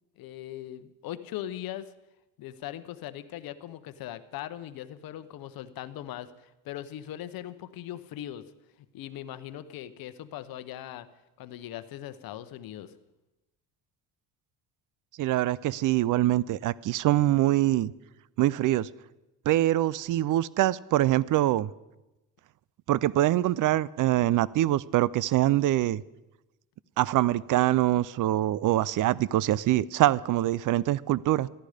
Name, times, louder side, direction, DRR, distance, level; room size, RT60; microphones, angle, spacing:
voice 1, 0.2-1.9 2.4-8.4 8.9-11.1 11.4-12.9, left 12 dB, 65° left, 13 dB, 0.9 m, -40 dB
voice 2, 15.2-17.9 18.4-18.9 19.5-21.7 22.9-26.0 27.0-31.5, right 14 dB, 55° right, 21 dB, 0.5 m, -24 dB
14.0 x 12.0 x 5.0 m, 1.0 s
cardioid pair, 95°, 38 cm